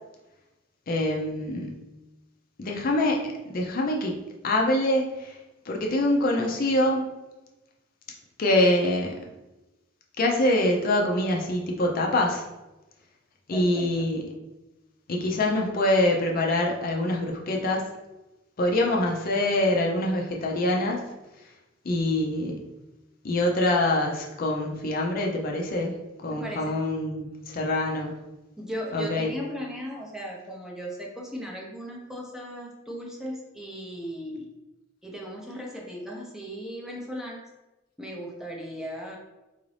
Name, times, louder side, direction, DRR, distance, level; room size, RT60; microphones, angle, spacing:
voice 1, 0.9-1.7 2.6-4.2 4.4-5.4 5.7-7.0 8.4-9.1 10.2-12.5 13.5-14.2 15.1-17.9 18.6-21.0 21.8-22.6 23.2-25.9 26.2-28.2 28.9-29.3, left 1 dB, 45° left, 0 dB, 0.5 m, -25 dB
voice 2, 13.5-14.1 26.3-26.8 28.6-34.5 35.0-37.4 38.0-39.2, equal, ahead, -2 dB, 0.6 m, -37 dB
3.9 x 2.5 x 3.2 m, 1.0 s
head